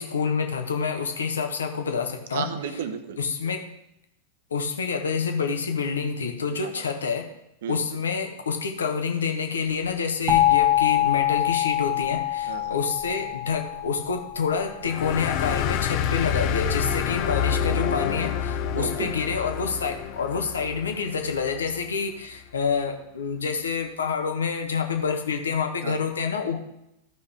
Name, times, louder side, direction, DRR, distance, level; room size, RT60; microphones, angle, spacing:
voice 1, 0.0-2.5 3.2-3.6 4.5-7.3 7.7-26.6, left 5 dB, 70° left, 5 dB, 1.1 m, -27 dB
voice 2, 2.3-3.2 6.6-6.8 7.6-7.8 12.5-12.8 18.8-19.1 25.8-26.0, right 8 dB, 55° right, 10 dB, 0.9 m, -33 dB
sound 1, 10.3-15.0, left 13 dB, 20° right, 1.0 m, -24 dB
sound 2, 14.8-21.9, left 8 dB, 45° left, 0.7 m, -28 dB
15.0 x 5.4 x 3.4 m, 0.85 s
figure-of-eight pair, 90°, 0 cm